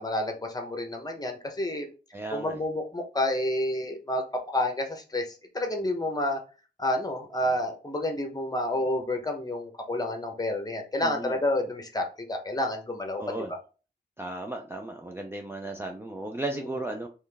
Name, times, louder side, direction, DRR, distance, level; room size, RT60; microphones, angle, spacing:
voice 1, 0.0-1.9 2.3-6.4 6.8-13.4 16.5-16.7, left 1 dB, 20° left, 4 dB, 0.9 m, -29 dB
voice 2, 2.1-2.6 11.0-11.3 13.2-13.5 14.2-17.1, right 2 dB, 15° right, 3 dB, 0.4 m, -35 dB
4.3 x 3.1 x 3.4 m, 0.35 s
wide cardioid pair, 135°, 18 cm